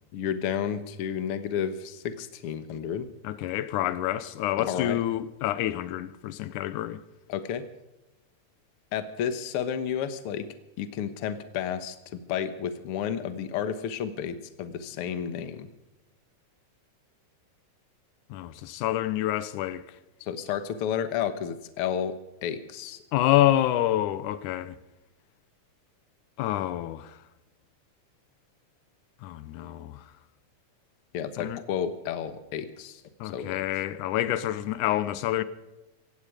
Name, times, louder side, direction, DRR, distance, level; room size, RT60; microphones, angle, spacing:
voice 1, 0.1-3.1 4.7-5.0 7.3-7.6 8.9-10.5 10.8-15.7 20.2-23.0 31.1-33.0 33.3-33.7, left 8 dB, 60° left, 1.8 m, -31 dB
voice 2, 3.2-7.0 18.3-19.8 23.1-24.8 26.4-27.2 29.2-30.0 31.4-31.6 33.2-35.4, left 13 dB, 85° left, 2.3 m, -27 dB
17.5 x 16.0 x 5.0 m
omnidirectional pair, 3.5 m